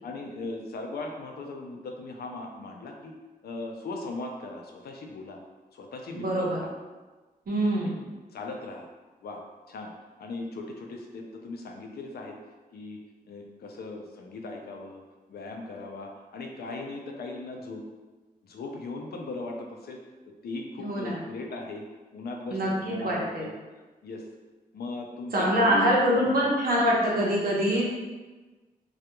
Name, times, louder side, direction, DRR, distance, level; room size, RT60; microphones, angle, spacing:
voice 1, 0.0-3.1 3.4-5.4 5.7-6.7 7.8-7.9 8.3-8.9 9.2-9.4 9.7-9.9 10.2-12.4 12.7-13.0 13.3-15.0 15.3-17.8 18.4-20.1 20.4-21.9 22.1-24.3 24.7-26.5, left 3 dB, 90° left, 2 dB, 0.4 m, -38 dB
voice 2, 6.1-6.6 7.5-8.0 20.8-21.2 22.5-23.4 25.3-27.8, equal, 70° right, -5 dB, 0.7 m, -24 dB
2.3 x 2.2 x 2.9 m, 1.2 s
wide cardioid pair, 160°, 16 cm